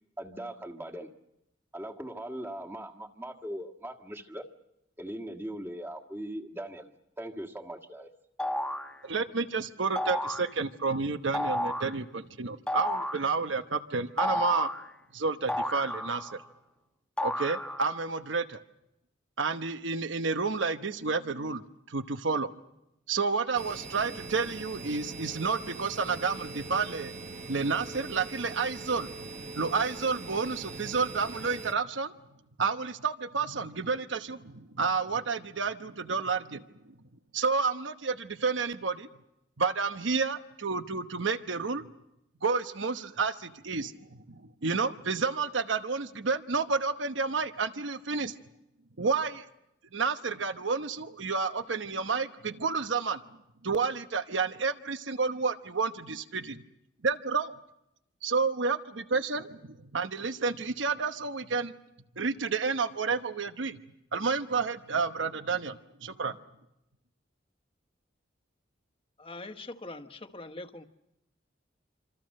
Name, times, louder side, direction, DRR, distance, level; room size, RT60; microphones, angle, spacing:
voice 1, 0.2-1.1 1.7-4.5 5.0-8.1, right 1 dB, 10° right, 3 dB, 1.7 m, -40 dB
sound 1, 8.4-8.9 10.0-10.5 11.3-12.0 12.7-13.3 14.2-14.9 15.5-16.4 17.2-18.0, left 1 dB, 5° left, 1.1 m, -32 dB
voice 2, 9.0-14.7 15.1-16.4 17.2-18.6 19.4-21.6 21.9-22.5 23.1-27.1 27.5-29.3 29.5-32.1 32.6-36.6 37.3-39.1 39.6-41.9 42.4-48.4 49.0-49.5 49.9-53.2 53.6-56.6 57.0-57.5 58.2-61.7 62.2-63.8 64.1-66.4, right 4 dB, 75° right, 9 dB, 1.0 m, -30 dB
sound 2, 23.6-31.7, right 3 dB, 40° right, 1.1 m, -42 dB
voice 3, 69.2-70.8, left 2 dB, 30° left, 7 dB, 1.3 m, -42 dB
26.5 x 26.5 x 6.5 m, 0.86 s
head